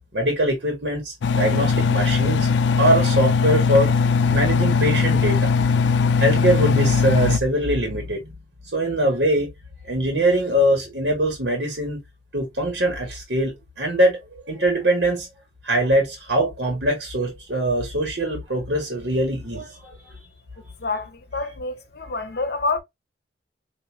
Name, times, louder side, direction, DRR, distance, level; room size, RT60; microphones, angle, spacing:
voice 1, 0.1-2.5 2.7-3.9 4.2-5.6 6.2-8.3 8.7-9.5 9.8-12.0 12.3-14.2 14.5-15.3 15.6-20.2, right 1 dB, 70° right, 1.3 m, -22 dB
Engine, 1.2-7.4, left 5 dB, 80° left, 0.4 m, -19 dB
voice 2, 20.8-22.8, left 3 dB, 60° left, 0.8 m, -27 dB
4.6 x 2.6 x 2.4 m
head